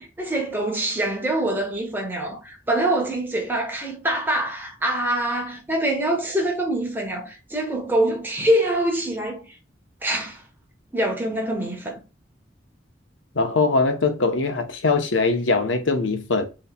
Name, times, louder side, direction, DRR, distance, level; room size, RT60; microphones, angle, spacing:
voice 1, 0.0-9.6 10.0-10.4 10.9-12.0, right 1 dB, 10° right, 1.1 m, -25 dB
voice 2, 13.3-16.5, left 3 dB, 90° left, 0.9 m, -21 dB
6.8 x 3.1 x 2.3 m
head